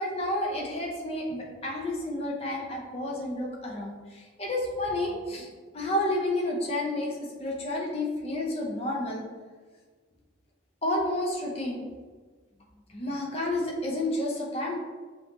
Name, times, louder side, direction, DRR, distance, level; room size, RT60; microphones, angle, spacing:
voice 1, 0.0-5.5 5.7-9.2 10.8-11.8 12.9-14.8, left 1 dB, 30° left, -1 dB, 0.7 m, -30 dB
5.5 x 2.8 x 2.9 m, 1.4 s
head